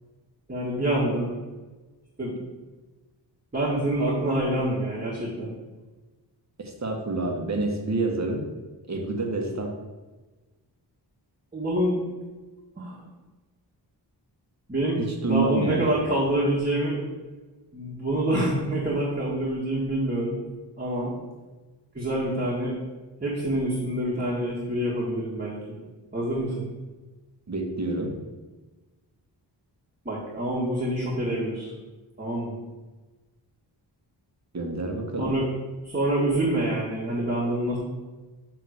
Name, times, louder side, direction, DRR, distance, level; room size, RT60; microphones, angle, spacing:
voice 1, 0.5-1.3 2.2-2.4 3.5-5.5 11.5-12.0 12.8-13.0 14.7-17.0 17.7-20.4 20.8-21.1 21.9-22.8 23.2-25.8 26.1-26.6 30.1-31.7 32.2-32.6 35.2-35.5 35.8-37.8, right 1 dB, 20° right, -7 dB, 1.9 m, -26 dB
voice 2, 6.6-8.5 8.9-9.7 15.0-15.9 27.5-28.2 34.5-35.3, right 2 dB, 40° right, 1 dB, 1.5 m, -28 dB
6.8 x 3.8 x 6.5 m, 1.2 s
wide cardioid pair, 80°, 43 cm